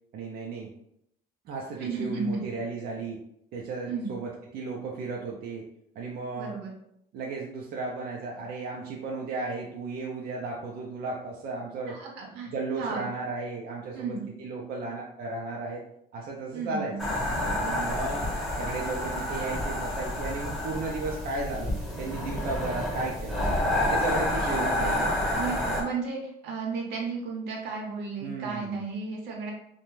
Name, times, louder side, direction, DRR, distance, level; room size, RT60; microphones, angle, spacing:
voice 1, 0.1-0.7 1.5-3.2 3.5-5.7 6.0-6.6 7.1-12.0 12.5-15.8 16.1-17.0 17.6-18.3 18.6-23.4 23.9-25.3 28.2-28.8, right 3 dB, 60° right, -2 dB, 0.5 m, -34 dB
voice 2, 1.8-2.4 3.9-4.1 6.4-6.8 11.9-13.1 13.9-14.2 16.5-17.0 24.4-24.7 25.3-29.5, right 4 dB, 85° right, -1 dB, 0.8 m, -34 dB
sound 1, 17.0-25.8, left 1 dB, ahead, 0.8 m, -29 dB
2.5 x 2.2 x 3.1 m, 0.75 s
cardioid pair, 110°, 17 cm